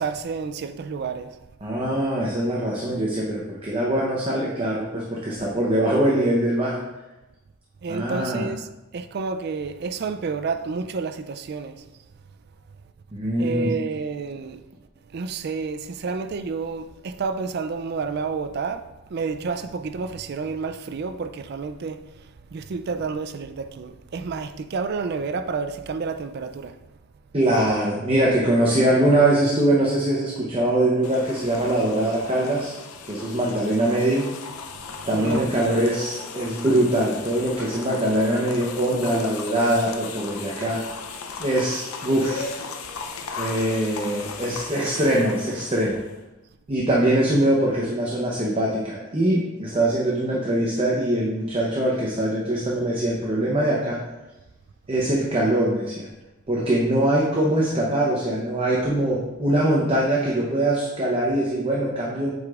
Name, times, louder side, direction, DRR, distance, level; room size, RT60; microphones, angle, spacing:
voice 1, 0.0-1.4 7.8-8.7 8.9-11.8 13.4-14.6 15.1-18.9 19.1-26.8 34.8-35.5, right 4 dB, 50° right, 0.3 m, -30 dB
voice 2, 1.6-6.8 7.9-8.5 13.1-13.7 27.3-32.7 33.0-34.3 35.1-40.8 41.4-42.6 43.4-46.0 46.7-54.0 54.9-56.1 56.5-62.3, right 1 dB, 25° right, 0.7 m, -22 dB
sound 1, 31.0-46.2, left 4 dB, 85° left, 0.5 m, -37 dB
8.0 x 4.9 x 2.4 m
head